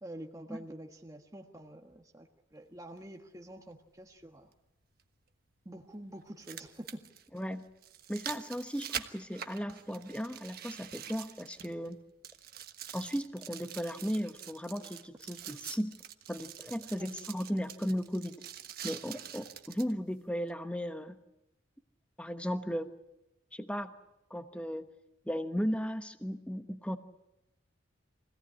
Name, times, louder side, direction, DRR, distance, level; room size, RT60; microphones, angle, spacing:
voice 1, 0.0-4.5 5.6-7.0 17.0-17.1, right 1 dB, 15° right, 2 dB, 1.4 m, -47 dB
sound 1, 3.0-3.1 5.0-5.1 6.2-11.9 12.2-19.9 20.5-20.6, right 9 dB, 50° right, 1.3 m, -45 dB
voice 2, 7.3-7.6 8.1-12.0 12.9-16.0 16.3-18.4 18.8-21.2 22.2-22.9 23.5-23.9 24.3-24.9 25.2-27.0, equal, 5° left, 8 dB, 1.1 m, -36 dB
25.0 x 17.5 x 9.8 m, 0.92 s
head